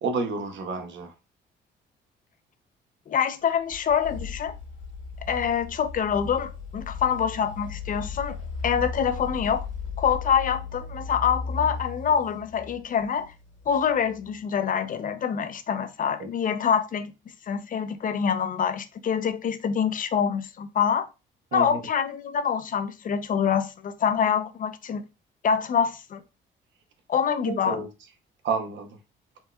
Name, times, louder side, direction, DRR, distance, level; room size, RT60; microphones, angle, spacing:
voice 1, 0.0-1.1 16.2-16.3 21.5-21.8 27.5-27.9 28.4-29.0, right 4 dB, 65° right, 0.8 m, -30 dB
voice 2, 3.1-4.5 5.3-8.4 8.6-9.7 10.0-13.3 13.7-17.1 17.5-21.1 21.5-25.0 25.4-26.2 27.1-27.8, left 7 dB, 45° left, 0.4 m, -25 dB
sound 1, 3.5-14.3, left 5 dB, 75° left, 1.6 m, -37 dB
4.4 x 2.2 x 2.2 m
cardioid pair, 90°, 20 cm